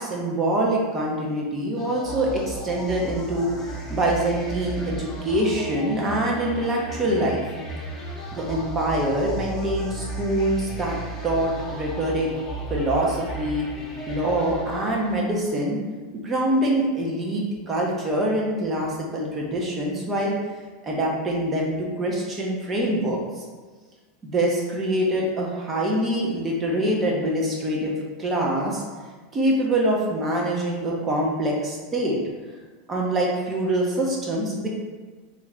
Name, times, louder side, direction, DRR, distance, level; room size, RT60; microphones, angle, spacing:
voice 1, 0.0-3.6 3.9-7.4 8.3-11.0 11.2-12.3 12.7-13.7 14.1-15.8 16.1-20.4 20.8-23.4 24.2-28.8 29.3-32.2 32.9-34.7, right 1 dB, 20° right, -2 dB, 0.7 m, -24 dB
sound 1, 1.8-15.4, right 2 dB, 15° left, 0.9 m, -34 dB
3.3 x 2.5 x 3.3 m, 1.4 s
supercardioid pair, 150°, 0 cm